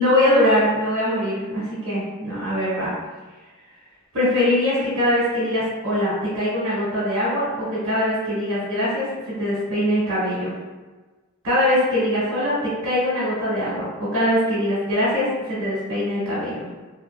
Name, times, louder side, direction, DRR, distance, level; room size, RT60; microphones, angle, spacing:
voice 1, 0.0-2.9 4.1-10.5 11.4-16.7, left 1 dB, 75° right, -9 dB, 1.2 m, -22 dB
2.7 x 2.5 x 2.3 m, 1.3 s
head